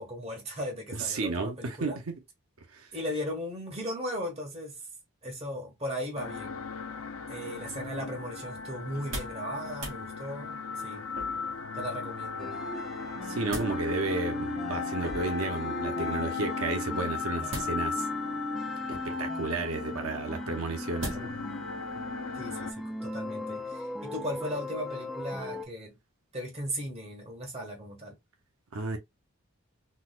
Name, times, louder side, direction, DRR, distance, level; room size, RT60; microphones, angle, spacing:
voice 1, 0.0-2.0 2.9-4.8 5.2-6.6 7.3-11.1 11.7-12.6 22.3-26.0 26.3-28.2, equal, 30° right, 1.3 m, -37 dB
voice 2, 0.9-2.2 2.7-2.9 13.2-18.1 18.9-21.2 28.7-29.0, right 3 dB, 85° right, 0.8 m, -32 dB
sound 1, 6.2-22.7, left 5 dB, 70° left, 0.5 m, -37 dB
sound 2, 8.9-9.4 9.7-10.0 11.1-11.6 13.0-13.8 15.0-15.5 17.5-18.1 18.9-19.3 21.0-21.5 21.9-22.0, equal, 60° right, 1.3 m, -39 dB
sound 3, 12.4-25.6, left 1 dB, ahead, 0.5 m, -38 dB
4.0 x 2.3 x 2.4 m
head